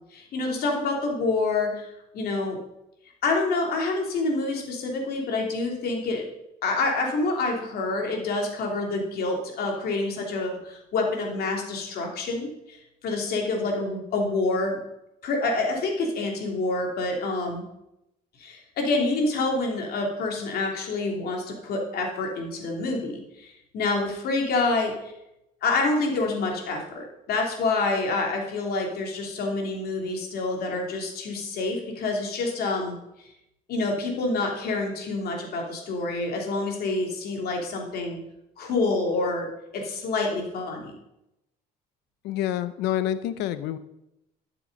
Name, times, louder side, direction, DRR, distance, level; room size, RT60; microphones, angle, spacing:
voice 1, 0.1-1.9 2.1-2.6 3.2-6.3 6.6-14.8 15.2-17.6 18.4-25.1 25.6-33.3 33.7-38.2 38.6-39.5 39.7-40.9, left 3 dB, 65° left, 1 dB, 3.0 m, -27 dB
voice 2, 42.2-43.8, left 11 dB, 85° left, 13 dB, 0.8 m, -27 dB
12.0 x 6.9 x 5.3 m, 0.86 s
cardioid pair, 110°, 17 cm